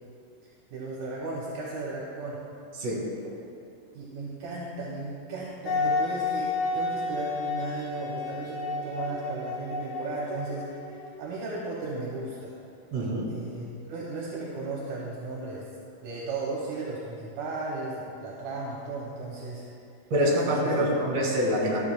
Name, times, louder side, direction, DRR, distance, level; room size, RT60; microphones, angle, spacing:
voice 1, 0.7-2.4 3.9-10.7 11.2-12.5 13.3-15.7 16.0-19.6 20.4-20.8, right 3 dB, 75° right, -5 dB, 2.2 m, -35 dB
Wind instrument woodwind instrument, 5.7-11.2, left 3 dB, 85° left, 3.1 m, -31 dB
voice 2, 12.9-13.3 20.1-21.8, equal, 55° right, -3 dB, 2.7 m, -25 dB
13.5 x 7.2 x 2.3 m, 2.6 s
omnidirectional pair, 3.7 m